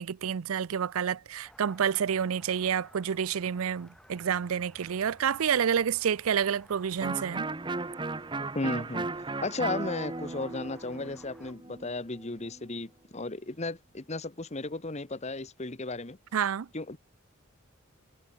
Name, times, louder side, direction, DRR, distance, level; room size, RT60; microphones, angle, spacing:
voice 1, 0.0-7.5 16.3-16.7, right 8 dB, 80° right, 0.5 m, -29 dB
sound 1, 1.4-11.5, equal, 5° left, 4.2 m, -57 dB
Electric guitar, 7.0-12.6, right 3 dB, 20° right, 0.7 m, -36 dB
voice 2, 8.5-9.1 9.4-16.2 16.7-17.0, left 2 dB, 30° left, 1.2 m, -35 dB
head